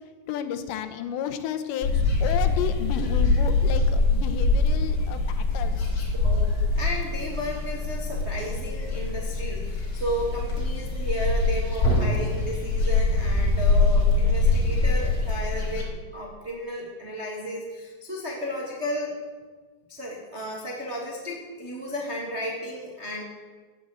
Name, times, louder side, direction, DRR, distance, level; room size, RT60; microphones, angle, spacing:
voice 1, 0.3-5.9, left 9 dB, 80° left, 9 dB, 3.0 m, -32 dB
sound 1, 1.8-15.8, left 3 dB, 40° left, 1.6 m, -24 dB
voice 2, 6.2-19.2 19.9-23.2, equal, 85° right, -3 dB, 0.5 m, -33 dB
15.5 x 7.7 x 7.8 m, 1.4 s
omnidirectional pair, 5.1 m